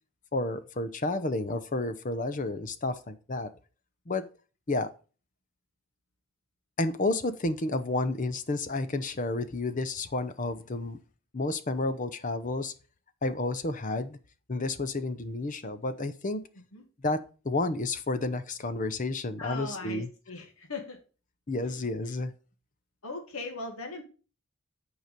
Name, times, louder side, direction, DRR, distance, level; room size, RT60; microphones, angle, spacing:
voice 1, 0.3-3.5 4.1-4.2 4.7-4.9 6.8-11.0 11.3-12.7 13.2-14.2 14.5-16.4 17.0-17.2 17.4-20.1 21.5-22.3, left 2 dB, 35° left, 0.7 m, -31 dB
voice 2, 19.4-21.0 21.6-21.7 23.0-24.0, left 3 dB, 80° left, 1.7 m, -39 dB
9.2 x 4.9 x 5.2 m
head